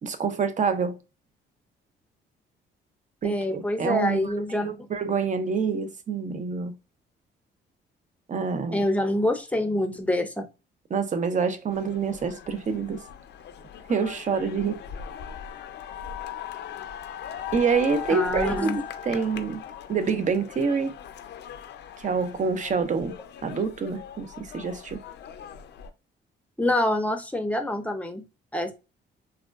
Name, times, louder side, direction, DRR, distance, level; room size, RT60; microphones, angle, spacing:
voice 1, 0.0-0.9 3.2-4.3 4.6-6.7 8.3-8.8 10.9-13.0 13.9-14.8 17.5-19.6 19.9-21.0 22.0-23.1 23.4-25.0, right 5 dB, 40° right, 0.5 m, -27 dB
voice 2, 3.2-4.9 8.7-10.5 18.1-18.8 26.6-28.2 28.5-28.7, left 1 dB, 5° left, 0.6 m, -26 dB
sound 1, 11.7-25.9, left 8 dB, 60° left, 0.4 m, -39 dB
3.5 x 2.2 x 2.3 m
cardioid pair, 90°, 20 cm